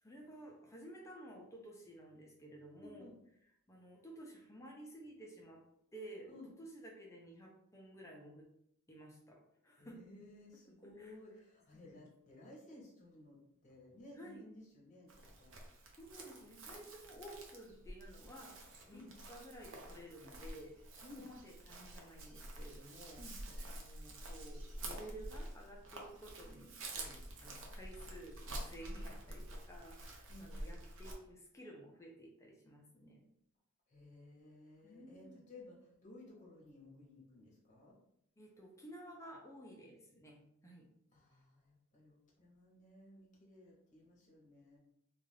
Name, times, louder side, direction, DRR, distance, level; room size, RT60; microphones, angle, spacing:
voice 1, 0.0-3.1 3.7-5.6 5.9-8.5 8.9-10.0 11.0-11.1 11.7-12.0 14.1-14.4 16.0-19.0 19.3-20.7 21.2-23.2 23.7-33.2 34.8-35.4 38.4-40.9, right 1 dB, 15° left, -1 dB, 0.4 m, -54 dB
voice 2, 2.8-3.2 6.3-6.5 9.8-15.6 18.9-19.1 21.0-21.3 23.2-23.4 30.3-30.5 33.9-38.0 41.1-44.8, left 2 dB, 35° left, -3 dB, 0.8 m, -57 dB
Chirp tweet, 15.1-31.1, right 1 dB, 60° right, 0.5 m, -49 dB
2.4 x 2.3 x 3.2 m, 0.74 s
head